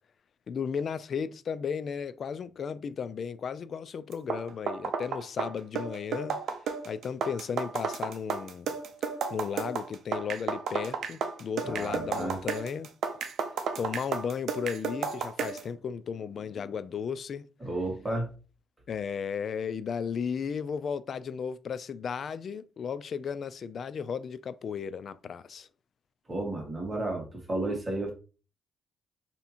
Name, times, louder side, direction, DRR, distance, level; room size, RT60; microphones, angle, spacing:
voice 1, 0.5-6.4 6.9-8.7 9.3-12.9 13.8-17.5 18.9-25.7, left 6 dB, 55° left, 0.3 m, -35 dB
sound 1, 4.1-15.7, right 6 dB, 65° right, 0.6 m, -33 dB
voice 2, 11.6-12.4 17.6-18.3 26.3-28.1, right 2 dB, 20° right, 1.9 m, -32 dB
3.4 x 2.8 x 4.2 m
cardioid pair, 90°, 0 cm